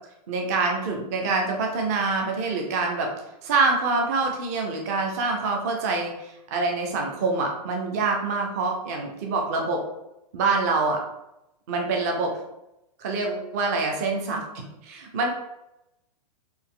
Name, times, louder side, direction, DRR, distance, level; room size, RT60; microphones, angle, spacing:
voice 1, 0.3-3.1 3.4-9.8 10.3-11.0 11.7-12.3 13.0-15.3, right 3 dB, 25° right, 2 dB, 0.5 m, -26 dB
4.2 x 2.4 x 3.6 m, 0.89 s
hypercardioid pair, 175°, 21 cm